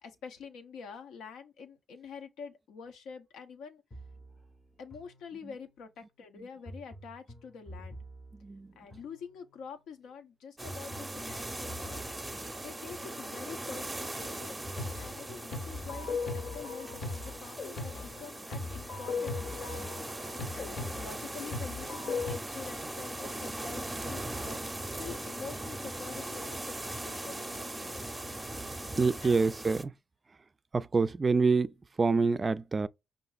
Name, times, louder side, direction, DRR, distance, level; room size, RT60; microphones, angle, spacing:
voice 1, 0.0-3.8 4.8-8.0 8.8-12.0 12.6-14.6 15.0-20.0 20.5-24.6 25.0-28.0 29.2-29.4, left 6 dB, 85° left, 0.7 m, -46 dB
sound 1, 3.9-5.8 6.7-9.7 10.7-13.7 14.7-17.7 18.7-20.0, equal, 25° left, 0.7 m, -49 dB
voice 2, 8.4-8.7 19.8-19.9 29.0-29.9 30.7-32.9, right 4 dB, 35° right, 0.3 m, -27 dB
sound 2, 10.6-29.8, right 1 dB, 10° right, 0.7 m, -40 dB
sound 3, 14.8-22.4, left 4 dB, 60° left, 1.0 m, -38 dB
5.4 x 2.5 x 2.4 m
cardioid pair, 70°, 0 cm